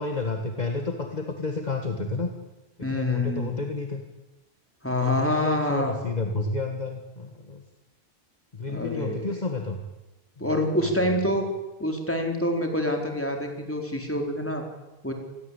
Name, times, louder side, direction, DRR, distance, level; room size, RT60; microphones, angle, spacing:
voice 1, 0.0-2.3 2.9-4.0 4.9-7.6 8.5-9.8 10.4-10.9, left 3 dB, 40° left, 4 dB, 2.0 m, -31 dB
voice 2, 2.8-3.5 4.8-6.0 8.7-9.3 10.4-11.5 11.8-14.6 15.0-15.1, left 1 dB, 10° left, 3 dB, 4.3 m, -26 dB
27.0 x 20.5 x 8.4 m, 1.1 s
omnidirectional pair, 1.1 m